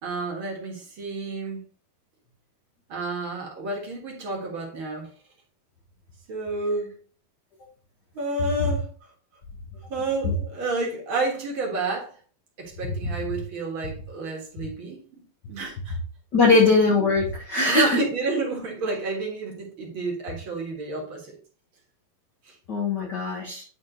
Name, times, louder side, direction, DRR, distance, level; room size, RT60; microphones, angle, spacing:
voice 1, 0.0-1.6 2.9-5.1 6.3-7.0 8.1-8.9 9.9-12.1 12.6-15.2 15.5-16.0 16.4-16.7 17.7-21.4 22.4-22.6, right 2 dB, 45° right, 1.9 m, -30 dB
voice 2, 16.3-18.0 22.7-23.6, left 3 dB, 50° left, 1.3 m, -20 dB
9.7 x 3.7 x 4.0 m
omnidirectional pair, 4.0 m